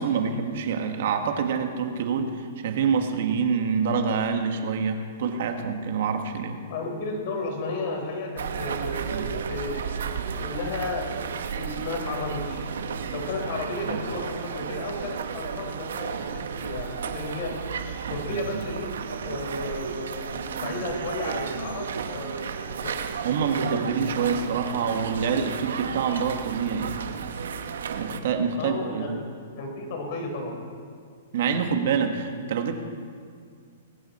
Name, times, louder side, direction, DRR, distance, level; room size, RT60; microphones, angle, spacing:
voice 1, 0.0-6.6 9.1-9.3 13.8-14.0 18.1-18.6 23.2-27.0 27.9-29.2 31.3-32.8, right 6 dB, 60° right, 5 dB, 1.6 m, -26 dB
voice 2, 6.7-10.0 10.4-11.1 11.5-12.7 13.1-17.5 18.1-22.5 22.8-23.1 28.6-29.2 29.6-30.6, left 3 dB, 50° left, 2 dB, 4.4 m, -33 dB
sound 1, 8.4-28.2, right 6 dB, 80° right, 1.1 m, -33 dB
20.0 x 15.0 x 4.4 m, 2.2 s
hypercardioid pair, 145°, 0 cm